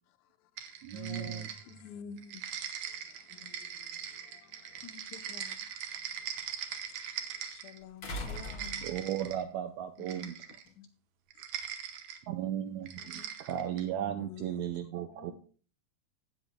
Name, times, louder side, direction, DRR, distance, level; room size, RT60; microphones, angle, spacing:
voice 1, 0.1-1.9 2.9-5.3 5.9-8.9 14.2-14.7, left 10 dB, 85° left, 2.6 m, -53 dB
sound 1, 0.6-1.9 2.2-7.8 8.2-9.4 10.0-10.7 11.3-12.2 12.9-13.9, right 8 dB, 65° right, 2.1 m, -41 dB
voice 2, 0.8-1.5 8.8-10.4 12.3-15.3, right 11 dB, 80° right, 1.7 m, -35 dB
voice 3, 1.7-2.5 4.8-5.7 10.0-10.3 10.7-10.9 12.6-12.7 13.0-14.0 15.1-15.3, left 6 dB, 70° left, 1.8 m, -50 dB
sound 2, 4.7-4.8 8.0-9.3 10.7-10.8, equal, 40° left, 2.6 m, -40 dB
17.5 x 7.7 x 2.2 m
omnidirectional pair, 4.0 m